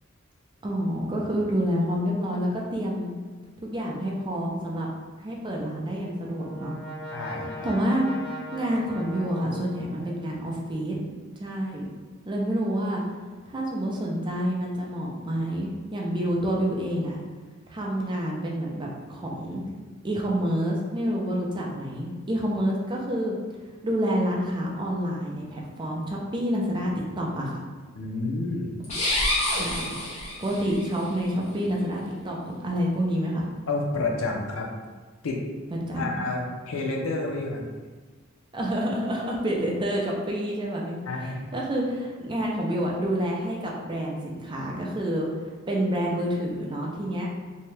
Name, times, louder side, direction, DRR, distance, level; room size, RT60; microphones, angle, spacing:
voice 1, 0.6-3.1 3.6-4.9 5.2-6.8 7.6-10.9 11.4-11.9 12.2-13.0 13.5-17.2 17.7-19.6 20.0-23.3 23.8-27.6 29.5-33.5 35.7-36.3 38.5-41.0 41.2-45.3 45.7-47.3, equal, 20° right, -2 dB, 0.4 m, -28 dB
Brass instrument, 5.7-10.5, left 1 dB, 5° left, 1.0 m, -40 dB
voice 2, 7.1-7.7 28.0-28.8 33.7-34.7 35.2-35.4 36.0-37.7 41.1-41.5, left 2 dB, 80° left, 0 dB, 0.5 m, -29 dB
sound 1, 28.8-30.8, left 1 dB, 30° left, 0.7 m, -27 dB
2.7 x 2.2 x 3.1 m, 1.4 s
head